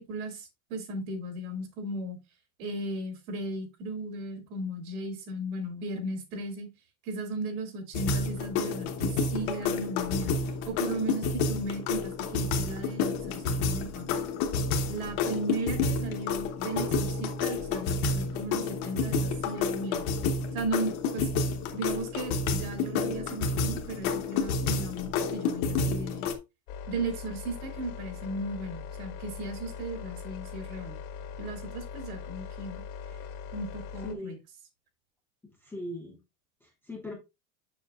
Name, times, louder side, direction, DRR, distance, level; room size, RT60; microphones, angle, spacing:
voice 1, 0.0-2.2 2.6-6.7 7.0-10.4 10.7-14.2 14.9-20.1 20.5-21.3 21.7-26.3 26.9-31.0 31.4-32.8 33.5-34.3, right 2 dB, 75° right, 2.6 m, -36 dB
sound 1, 7.9-26.4, left 4 dB, 45° left, 1.0 m, -30 dB
sound 2, 26.7-34.1, left 6 dB, 70° left, 1.8 m, -41 dB
voice 2, 34.0-34.4 35.6-36.2 36.6-37.1, left 1 dB, 5° left, 0.4 m, -39 dB
6.9 x 6.5 x 2.4 m
supercardioid pair, 170°, 44 cm